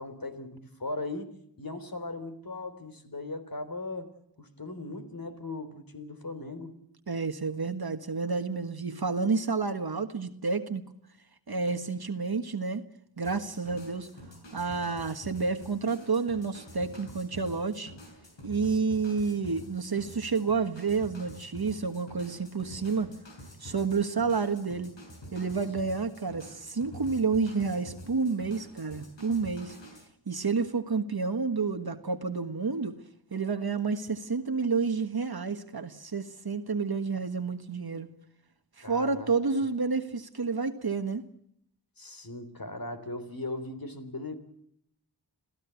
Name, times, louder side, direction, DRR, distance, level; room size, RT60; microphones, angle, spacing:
voice 1, 0.0-4.1 4.4-6.7 38.8-39.3 42.0-44.3, left 2 dB, 55° left, 7 dB, 3.8 m, -38 dB
voice 2, 7.1-10.8 11.5-12.8 13.2-14.1 14.5-17.9 18.4-23.1 23.6-24.9 25.3-29.8 30.3-33.0 33.3-38.1 38.8-41.2, right 4 dB, 60° right, 7 dB, 1.6 m, -30 dB
sound 1, 13.2-30.1, equal, 90° left, 5.8 m, -47 dB
27.0 x 16.0 x 8.2 m, 0.72 s
wide cardioid pair, 50°, 43 cm